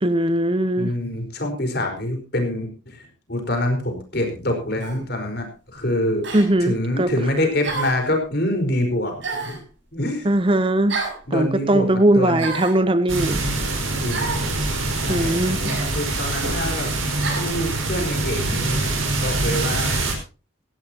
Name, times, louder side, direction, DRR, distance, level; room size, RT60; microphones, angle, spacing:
voice 1, 0.0-0.9 6.3-7.1 10.2-11.0 11.3-13.4 15.1-15.6, right 1 dB, 25° right, 13 dB, 0.7 m, -20 dB
voice 2, 0.8-3.0 3.3-5.5 5.7-6.3 6.6-9.6 9.9-10.3 11.3-12.5 14.0-14.3 15.0-16.9 17.3-18.9 19.2-20.0, left 1 dB, 50° left, 4 dB, 4.8 m, -25 dB
sound 1, 4.8-5.0 6.2-6.5 7.6-8.1 9.2-9.6 10.9-11.2 12.4-12.8 14.1-14.5 15.6-15.9 17.2-17.5, right 3 dB, 65° right, 6.9 m, -29 dB
sound 2, 13.1-20.1, right 2 dB, 85° right, 5.0 m, -24 dB
17.5 x 15.5 x 2.9 m, 0.34 s
head